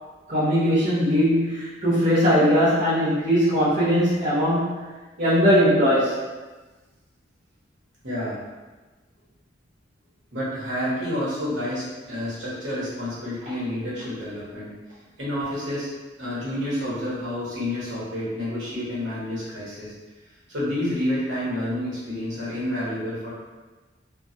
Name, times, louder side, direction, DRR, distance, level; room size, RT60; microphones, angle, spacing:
voice 1, 0.3-4.8 5.2-6.2, equal, 45° right, -12 dB, 0.8 m, -20 dB
voice 2, 8.0-8.4 10.3-14.7 15.2-15.9 16.2-19.9 20.5-23.3, left 1 dB, 70° right, -8 dB, 1.1 m, -29 dB
3.0 x 2.3 x 2.7 m, 1.2 s
head